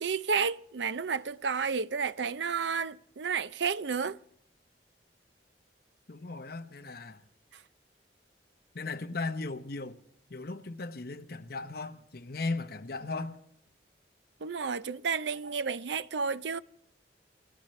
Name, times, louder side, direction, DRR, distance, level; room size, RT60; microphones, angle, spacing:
voice 1, 0.0-4.2 14.4-16.6, right 5 dB, 80° right, 0.6 m, -31 dB
voice 2, 6.1-7.2 8.7-10.0 10.3-13.4, left 3 dB, 60° left, 1.0 m, -37 dB
29.0 x 15.0 x 3.2 m
head